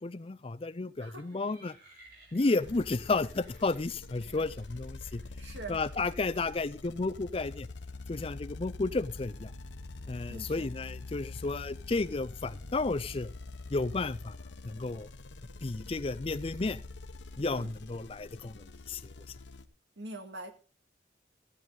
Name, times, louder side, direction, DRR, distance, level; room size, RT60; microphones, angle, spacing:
voice 1, 0.0-1.7 2.3-5.2 5.7-7.7 8.1-9.5 10.1-13.3 13.7-14.3 14.6-15.1 15.6-16.8 17.4-19.0, left 3 dB, 30° left, 12 dB, 0.5 m, -32 dB
sound 1, 1.1-6.2, right 2 dB, 55° right, 5.2 m, -60 dB
sound 2, 2.6-19.7, left 3 dB, 80° left, 0.9 m, -45 dB
voice 2, 5.0-5.8 10.3-10.7 17.4-17.7 20.0-20.5, right 2 dB, 80° right, 5 dB, 2.1 m, -45 dB
15.5 x 9.1 x 3.9 m, 0.35 s
head